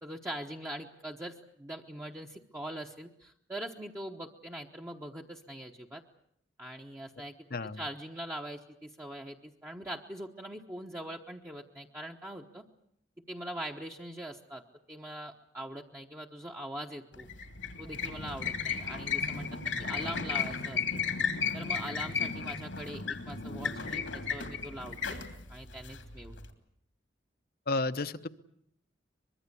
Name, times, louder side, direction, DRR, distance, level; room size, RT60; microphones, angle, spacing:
voice 1, 0.0-6.0 6.6-7.4 7.6-12.6 13.3-14.6 14.9-17.3 17.8-21.0 21.5-25.2 25.5-26.3, right 1 dB, 15° right, -1 dB, 1.0 m, -42 dB
sound 1, 17.1-26.5, left 5 dB, 90° left, 3.0 m, -34 dB
voice 2, 27.7-28.3, left 3 dB, 55° left, 11 dB, 0.9 m, -32 dB
24.0 x 22.0 x 8.4 m, 0.71 s
head